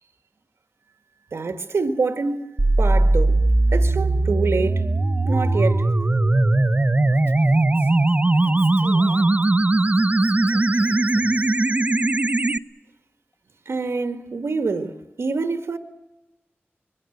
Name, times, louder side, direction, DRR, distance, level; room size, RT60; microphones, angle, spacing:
voice 1, 1.3-3.4 3.7-4.8 5.2-5.9 13.7-15.8, right 4 dB, 85° right, 1.8 m, -26 dB
sound 1, 2.6-12.6, right 2 dB, 35° right, 1.0 m, -19 dB
voice 2, 7.0-7.9 8.2-9.3 10.2-11.6, left 2 dB, 60° left, 7.8 m, -44 dB
25.0 x 23.0 x 8.1 m
wide cardioid pair, 85°, 4 cm